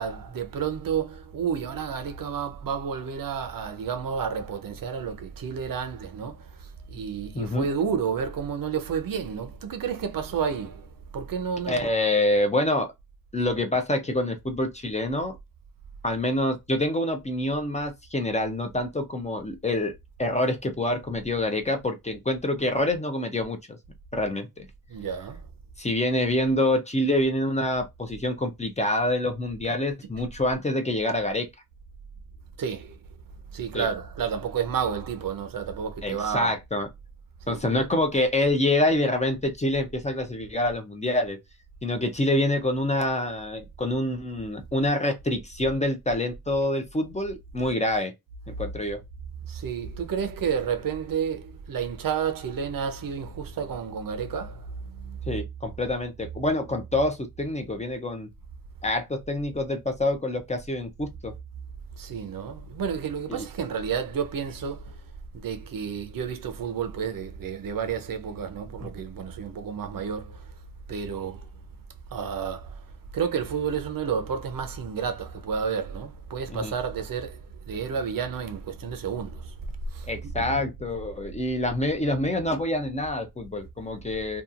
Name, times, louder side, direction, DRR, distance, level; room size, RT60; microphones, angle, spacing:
voice 1, 0.0-11.8 24.9-25.5 32.6-33.0 33.5-36.5 37.4-37.9 49.5-55.2 62.0-65.0 65.3-70.6 70.9-71.5 72.1-72.8 73.1-79.6 79.9-80.1 80.4-80.6 81.7-81.8, right 7 dB, 70° right, 0.6 m, -31 dB
voice 2, 7.3-7.7 11.7-12.9 13.3-15.4 16.0-19.9 20.2-23.8 24.1-24.7 25.8-31.5 33.7-33.9 36.0-36.9 37.5-41.4 41.8-48.1 48.5-49.0 55.3-58.3 58.8-61.3 63.3-63.5 68.8-68.9 76.5-76.7 80.1-84.4, left 1 dB, 20° left, 0.4 m, -26 dB
2.8 x 2.3 x 2.4 m
wide cardioid pair, 135°, 35 cm